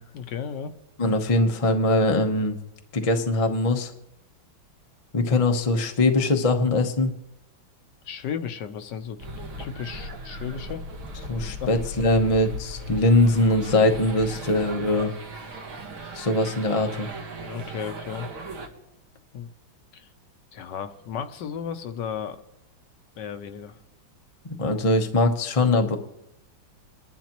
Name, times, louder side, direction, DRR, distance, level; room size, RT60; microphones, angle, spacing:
voice 1, 0.1-0.7 8.0-9.2 9.6-10.8 11.6-11.8 17.4-18.3 19.3-19.5 19.9-20.1 20.5-22.4 23.1-23.8, left 7 dB, 70° left, 9 dB, 1.2 m, -34 dB
voice 2, 1.0-2.6 2.9-3.9 5.1-7.1 11.3-15.1 16.1-17.1 24.4-26.0, left 2 dB, 40° left, 4 dB, 0.4 m, -22 dB
sound 1, 9.2-18.7, right 1 dB, 80° right, 2.3 m, -37 dB
23.5 x 11.5 x 3.0 m, 0.86 s
omnidirectional pair, 2.2 m